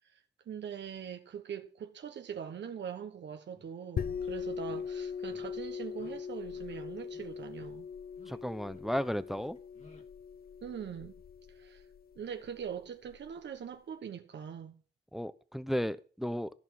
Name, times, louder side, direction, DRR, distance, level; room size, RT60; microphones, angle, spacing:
voice 1, 0.0-7.9 10.6-11.1 11.5-11.9 12.1-14.8, right 8 dB, 80° right, 1.3 m, -42 dB
sound 1, 3.6-3.7 4.1-4.3 4.6-4.8 5.2-5.5 5.9-6.2 6.5-6.8 7.1-7.7 8.0-8.4 8.6-9.0 9.4-10.0, left 3 dB, 40° left, 2.5 m, -59 dB
sound 2, 4.0-13.3, left 6 dB, 55° left, 0.6 m, -41 dB
voice 2, 8.3-9.6 15.1-16.5, equal, ahead, 0.6 m, -34 dB
14.5 x 6.2 x 7.7 m
wide cardioid pair, 145°, 18 cm